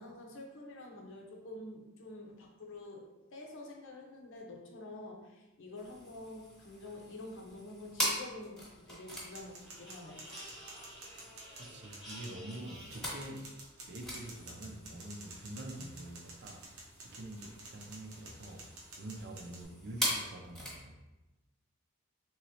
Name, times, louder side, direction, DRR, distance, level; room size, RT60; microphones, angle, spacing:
voice 1, 0.0-10.7, left 2 dB, 65° left, 1 dB, 0.7 m, -48 dB
sound 1, 5.8-20.8, equal, ahead, 1.1 m, -42 dB
sound 2, 9.1-19.6, right 2 dB, 90° right, 0.8 m, -52 dB
voice 2, 11.6-13.5 13.9-16.7 17.0-21.0, right 1 dB, 55° right, 2 dB, 0.5 m, -46 dB
3.6 x 3.0 x 2.9 m, 1.0 s
head